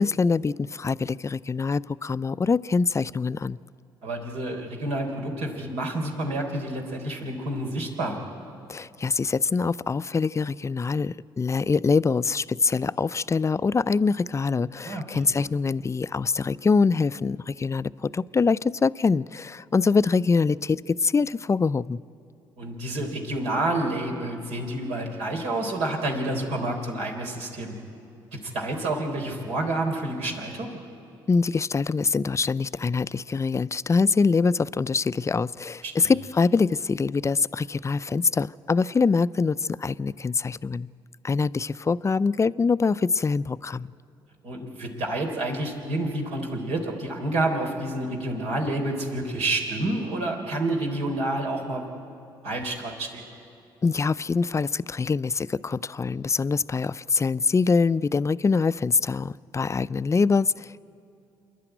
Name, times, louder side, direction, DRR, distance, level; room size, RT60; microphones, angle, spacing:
voice 1, 0.0-3.6 8.7-22.0 31.3-40.9 41.2-43.9 53.8-60.8, left 4 dB, 25° left, 18 dB, 0.4 m, -24 dB
voice 2, 4.0-8.2 14.8-15.2 22.6-27.7 28.3-30.8 35.8-36.1 44.4-51.8 52.4-53.3, right 2 dB, 75° right, 1 dB, 3.7 m, -29 dB
27.0 x 11.0 x 9.1 m, 2.8 s
hypercardioid pair, 55°, 11 cm